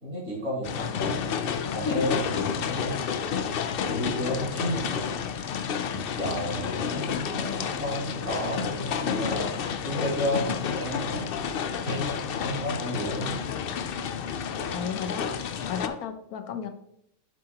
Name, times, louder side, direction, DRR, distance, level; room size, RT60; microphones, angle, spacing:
voice 1, 0.0-1.3 1.7-3.4 3.9-4.9 5.9-9.5 9.8-11.5 11.8-12.1 12.4-13.4, left 1 dB, 70° right, -5 dB, 3.1 m, -32 dB
sound 1, 0.6-15.9, left 7 dB, 60° left, 0.6 m, -30 dB
voice 2, 14.7-15.4 15.7-16.7, left 6 dB, 80° left, 8 dB, 1.3 m, -32 dB
7.7 x 7.7 x 2.9 m, 0.77 s
omnidirectional pair, 1.5 m